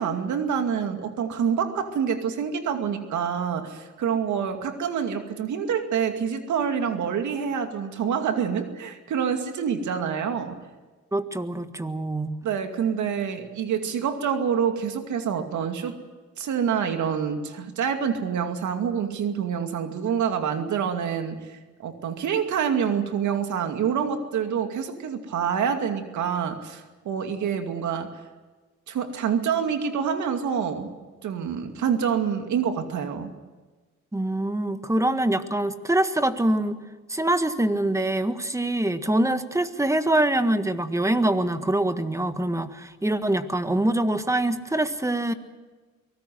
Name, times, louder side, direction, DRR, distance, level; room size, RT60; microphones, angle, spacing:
voice 1, 0.0-10.6 12.4-16.0 16.4-28.1 28.9-30.9 31.2-33.3, right 7 dB, 70° right, 6 dB, 2.4 m, -27 dB
voice 2, 11.1-12.4 34.1-36.8 37.1-45.3, right 1 dB, 10° right, 10 dB, 1.6 m, -24 dB
24.0 x 18.5 x 7.8 m, 1.3 s
cardioid pair, 80°, 30 cm